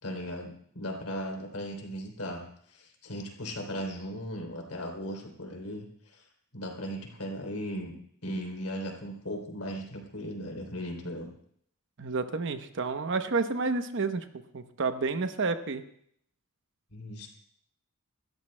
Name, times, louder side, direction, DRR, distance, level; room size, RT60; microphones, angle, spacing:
voice 1, 0.0-6.3 6.5-7.9 8.2-11.3 16.9-17.3, equal, 75° left, 2 dB, 3.2 m, -37 dB
voice 2, 12.0-14.2 14.5-15.8, right 4 dB, 60° right, 9 dB, 0.8 m, -30 dB
25.5 x 13.5 x 2.2 m, 0.66 s
head